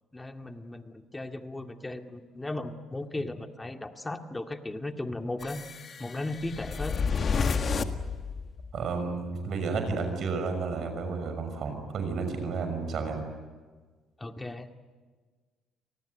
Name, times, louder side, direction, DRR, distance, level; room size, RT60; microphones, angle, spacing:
voice 1, 0.1-5.7 6.0-7.1 14.2-14.7, left 2 dB, 15° left, 5 dB, 2.2 m, -36 dB
sound 1, 5.4-8.9, left 5 dB, 45° left, 1.7 m, -31 dB
voice 2, 8.7-13.2, right 4 dB, 60° right, 7 dB, 6.1 m, -32 dB
28.0 x 19.5 x 9.4 m, 1.4 s
supercardioid pair, 75°, 0 cm